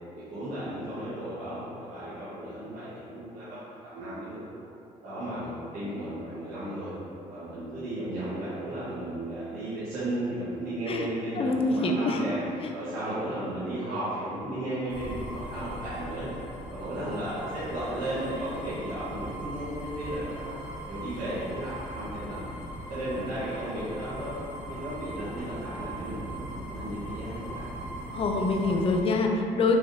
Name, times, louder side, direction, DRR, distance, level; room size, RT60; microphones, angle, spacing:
voice 1, 0.1-4.6 5.0-6.9 7.3-12.4 12.7-16.3 16.7-20.6 20.9-22.5 22.9-24.3 24.7-27.7, right 1 dB, 85° right, -13 dB, 1.1 m, -35 dB
voice 2, 11.4-12.3 28.1-29.8, left 3 dB, 45° left, 3 dB, 0.5 m, -25 dB
sound 1, 14.9-29.0, right 1 dB, 10° right, 0.8 m, -39 dB
4.7 x 3.2 x 2.6 m, 2.7 s
cardioid pair, 90°, 14 cm